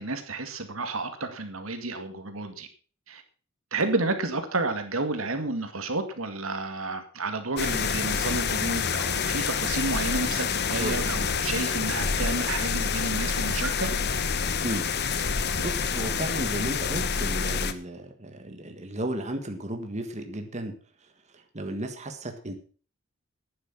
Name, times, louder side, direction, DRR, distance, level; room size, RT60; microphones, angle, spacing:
voice 1, 0.0-2.7 3.1-3.2 3.7-13.9, right 3 dB, 80° right, 7 dB, 2.2 m, -31 dB
sound 1, 7.6-17.7, left 6 dB, 55° left, 1.0 m, -27 dB
voice 2, 14.6-20.7 21.0-21.1 21.3-22.5, right 1 dB, 35° right, 5 dB, 1.6 m, -34 dB
11.5 x 9.9 x 6.0 m, 0.40 s
head